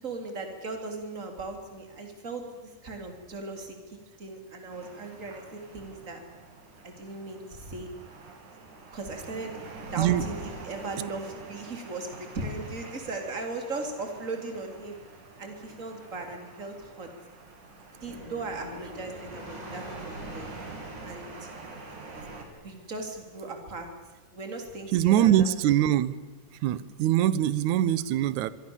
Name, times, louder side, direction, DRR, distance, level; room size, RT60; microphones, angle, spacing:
voice 1, 0.0-6.2 6.8-7.9 8.9-9.5 9.9-15.0 15.4-17.1 18.0-20.5 21.0-21.5 22.6-23.9 24.3-25.5, right 3 dB, 20° right, 4 dB, 3.6 m, -38 dB
sound 1, 4.7-22.4, right 3 dB, 55° right, 4.6 m, -46 dB
voice 2, 10.0-10.3 24.9-26.2 26.6-28.5, right 12 dB, 70° right, 17 dB, 1.9 m, -23 dB
sound 2, 17.9-23.0, left 1 dB, 10° left, 3.2 m, -47 dB
27.0 x 23.0 x 7.3 m, 1.2 s
omnidirectional pair, 4.3 m